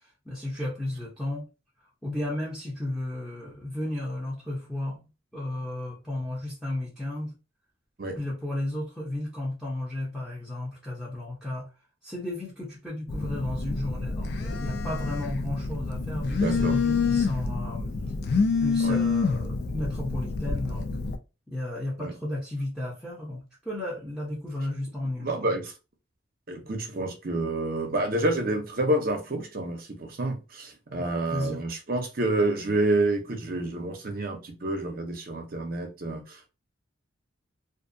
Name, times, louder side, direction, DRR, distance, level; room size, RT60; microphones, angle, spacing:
voice 1, 0.0-1.5 2.0-5.0 5.3-7.3 8.2-11.7 12.0-18.0 18.6-20.9 21.5-25.5 31.0-31.6, left 1 dB, ahead, 0.6 m, -33 dB
Telephone, 13.1-21.2, left 4 dB, 55° left, 0.3 m, -27 dB
voice 2, 16.4-16.8 18.8-19.0 22.0-22.1 25.2-25.7 26.5-36.5, right 2 dB, 50° right, 0.6 m, -28 dB
2.4 x 2.3 x 2.6 m
head